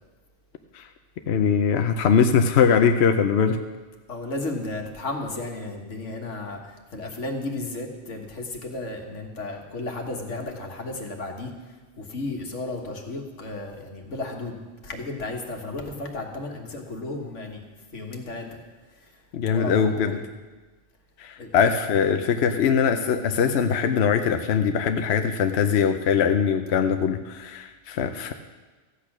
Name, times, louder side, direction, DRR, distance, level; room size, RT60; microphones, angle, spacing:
voice 1, 1.3-3.6 19.3-20.2 21.2-28.3, left 6 dB, 70° left, 6 dB, 0.9 m, -21 dB
voice 2, 4.1-11.5 12.0-14.5 14.8-17.6 17.9-18.6 19.5-20.3 21.4-21.5, left 2 dB, 90° left, 2 dB, 1.8 m, -33 dB
14.5 x 8.6 x 6.1 m, 1.3 s
omnidirectional pair, 1.2 m